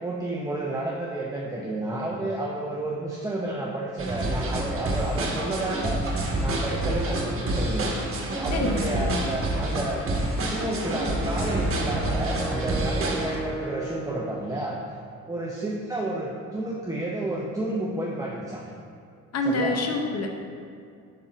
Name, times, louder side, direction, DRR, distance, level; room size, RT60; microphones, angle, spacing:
voice 1, 0.0-6.0 6.4-7.9 8.4-10.1 10.4-14.8 15.3-18.6 19.5-19.8, right 2 dB, 10° right, -4 dB, 0.6 m, -31 dB
sound 1, 4.0-13.4, right 1 dB, 45° right, 1.1 m, -28 dB
voice 2, 8.5-9.3 19.3-20.3, left 2 dB, 55° left, 3 dB, 0.8 m, -27 dB
Wind instrument woodwind instrument, 10.5-14.5, right 2 dB, 15° left, 0.9 m, -36 dB
5.5 x 3.7 x 5.0 m, 2.3 s
cardioid pair, 90°, 30 cm